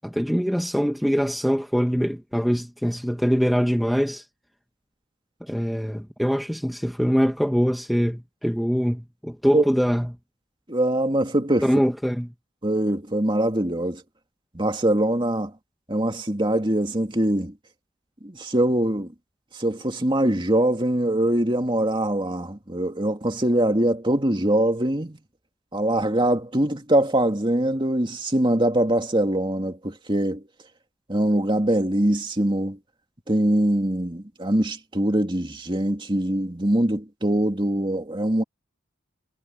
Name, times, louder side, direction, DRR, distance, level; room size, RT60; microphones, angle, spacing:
voice 1, 0.0-4.3 5.4-10.1 11.6-12.3, equal, ahead, 1.0 m, -23 dB
voice 2, 10.7-11.7 12.6-14.0 14.5-15.5 15.9-17.5 18.2-19.1 19.6-25.2 25.7-30.4 31.1-32.8 33.3-38.4, right 1 dB, 25° right, 2.5 m, -23 dB
head